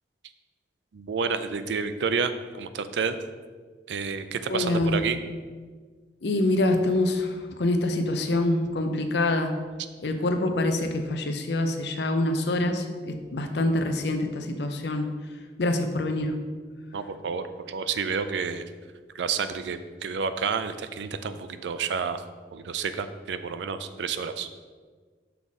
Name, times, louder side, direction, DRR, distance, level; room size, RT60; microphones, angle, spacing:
voice 1, 0.9-3.2 3.9-5.2 16.9-18.6 19.1-22.2 22.5-24.5, right 5 dB, 85° right, 11 dB, 0.4 m, -30 dB
voice 2, 4.5-5.0 6.2-9.6 10.0-15.1 15.6-16.3, left 2 dB, 75° left, 6 dB, 0.6 m, -25 dB
5.7 x 4.1 x 4.8 m, 1.5 s
head